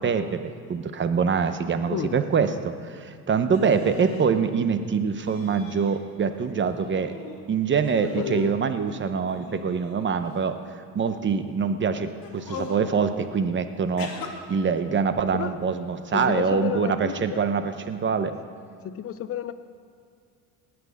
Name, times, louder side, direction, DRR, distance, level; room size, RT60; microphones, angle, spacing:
voice 1, 0.0-7.1 7.5-10.6 10.9-18.3, right 6 dB, 25° right, 9 dB, 0.9 m, -25 dB
sound 1, 3.5-4.3 5.2-6.0 6.3-7.4 7.8-8.5 9.3-10.3 11.1-11.4 12.2-12.8 14.0-14.3, left 6 dB, 50° left, 2.2 m, -40 dB
voice 2, 8.2-8.6 15.3-15.5 16.1-17.4 18.8-19.5, left 9 dB, 30° left, 12 dB, 0.7 m, -31 dB
18.0 x 6.2 x 8.5 m, 2.3 s
supercardioid pair, 110°, 44 cm